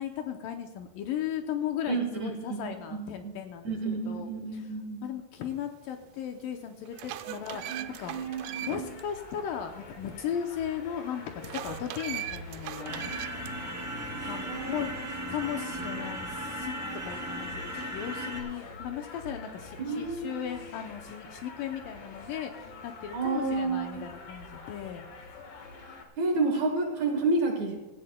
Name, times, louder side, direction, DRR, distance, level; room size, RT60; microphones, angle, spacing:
voice 1, 0.0-3.8 4.1-4.8 5.0-8.3 8.6-13.2 14.2-14.9 15.3-16.7 17.0-25.0, left 9 dB, 75° left, 5 dB, 2.1 m, -36 dB
voice 2, 1.9-2.6 3.2-3.3 3.7-5.1 7.2-7.3 7.7-8.9 13.0-13.2 14.1-14.8 16.9-17.0 19.8-20.4 23.1-24.1 26.2-27.8, right 3 dB, 65° right, 3 dB, 1.9 m, -30 dB
sound 1, 6.0-6.1 6.7-9.0 9.4-9.5 11.4-13.5, right 13 dB, 85° right, 2.3 m, -39 dB
sound 2, 6.9-26.1, left 3 dB, 55° left, 1.7 m, -46 dB
sound 3, 12.8-18.4, equal, 5° right, 1.5 m, -37 dB
17.0 x 15.0 x 2.2 m, 1.2 s
omnidirectional pair, 4.4 m